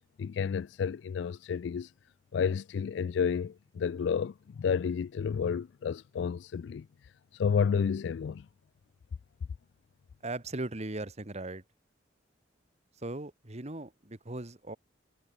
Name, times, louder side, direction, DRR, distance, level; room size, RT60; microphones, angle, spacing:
voice 1, 0.2-1.9 2.3-6.9 7.3-8.5, left 6 dB, 65° left, 0.3 m, -31 dB
voice 2, 10.2-11.6 13.0-14.8, right 2 dB, 35° right, 1.8 m, -38 dB
head